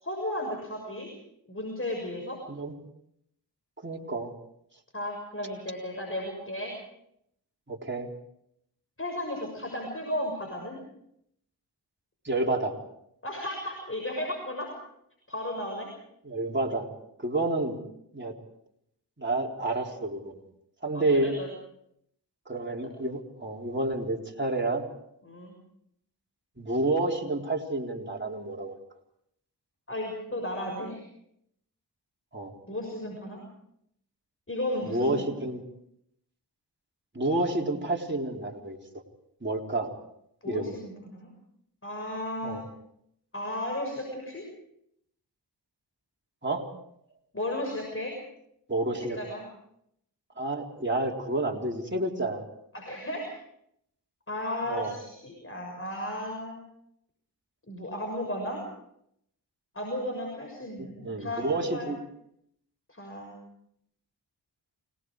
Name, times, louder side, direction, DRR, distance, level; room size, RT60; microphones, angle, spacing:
voice 1, 0.0-1.1 1.5-2.4 4.9-6.8 9.0-10.8 13.2-14.7 15.3-15.9 20.9-21.5 25.2-25.5 29.9-31.0 32.7-33.4 34.5-35.3 40.4-41.3 41.8-42.6 43.3-44.4 47.3-48.1 49.0-49.4 52.7-53.3 54.3-56.6 57.7-58.6 59.7-61.9 62.9-63.4, left 1 dB, 30° left, 2 dB, 6.7 m, -34 dB
voice 2, 3.8-4.3 7.7-8.1 12.2-12.8 16.2-16.9 17.2-17.8 18.1-18.3 19.2-20.3 20.8-21.4 22.5-24.9 26.6-28.8 32.3-32.5 34.8-35.6 37.1-38.8 39.4-39.9 40.5-40.7 42.4-42.6 46.4-46.7 48.7-49.2 50.4-52.4 54.7-55.0 60.8-62.0, right 2 dB, 25° right, 0 dB, 4.1 m, -29 dB
29.5 x 19.5 x 4.9 m, 0.75 s
cardioid pair, 40°, 41 cm